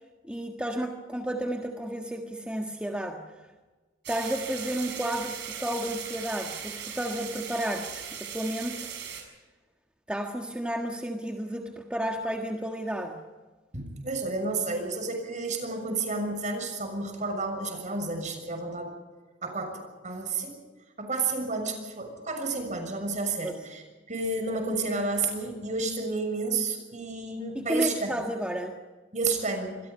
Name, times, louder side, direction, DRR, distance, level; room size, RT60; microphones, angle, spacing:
voice 1, 0.2-3.2 4.1-8.9 10.1-13.2 23.4-23.5 27.5-28.8, right 1 dB, 5° right, 2 dB, 1.6 m, -32 dB
sound 1, 4.0-9.2, right 8 dB, 65° right, 6.6 m, -38 dB
voice 2, 13.7-18.9 19.4-20.6 21.0-28.2 29.1-29.7, right 3 dB, 40° right, 5 dB, 6.6 m, -31 dB
26.5 x 22.0 x 5.5 m, 1.3 s
head